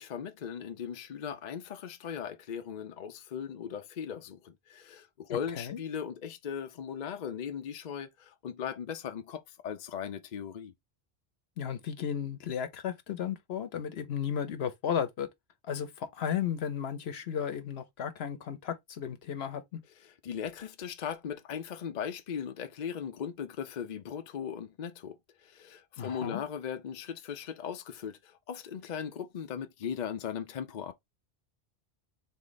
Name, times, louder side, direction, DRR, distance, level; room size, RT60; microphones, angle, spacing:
voice 1, 0.0-10.7 20.0-30.9, left 8 dB, 50° left, 0.7 m, -38 dB
voice 2, 5.3-5.8 11.6-15.3 15.7-19.8 26.0-26.4, left 8 dB, 75° left, 1.0 m, -34 dB
3.8 x 3.1 x 3.9 m
omnidirectional pair, 1.1 m